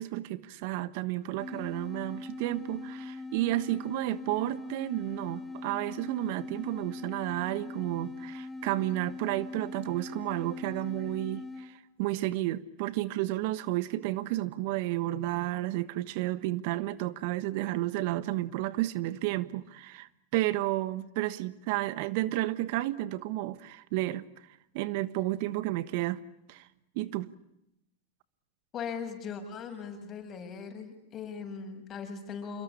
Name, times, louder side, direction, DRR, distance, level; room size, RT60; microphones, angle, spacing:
voice 1, 0.0-24.5 24.7-26.2 26.5-26.7 26.9-27.3, right 16 dB, 60° right, 1.3 m, -32 dB
sound 1, 1.4-11.8, left 2 dB, 5° left, 3.6 m, -41 dB
voice 2, 28.7-32.6, left 6 dB, 30° left, 7.6 m, -39 dB
27.5 x 22.5 x 8.5 m
hypercardioid pair, 110°, 0 cm